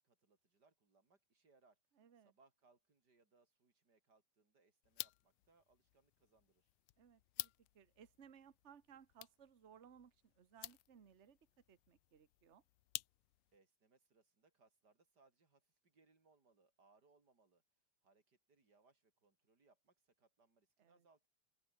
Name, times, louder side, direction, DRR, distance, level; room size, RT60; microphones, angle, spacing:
voice 1, 0.0-1.8 2.2-6.7 13.5-17.6 18.0-21.3, right 3 dB, 35° right, 4.3 m, -74 dB
voice 2, 2.0-2.3 7.0-11.4 11.7-12.6 20.8-21.0, right 8 dB, 80° right, 0.6 m, -63 dB
sound 1, 4.8-13.6, left 20 dB, 80° left, 1.6 m, -53 dB
open air
omnidirectional pair, 3.3 m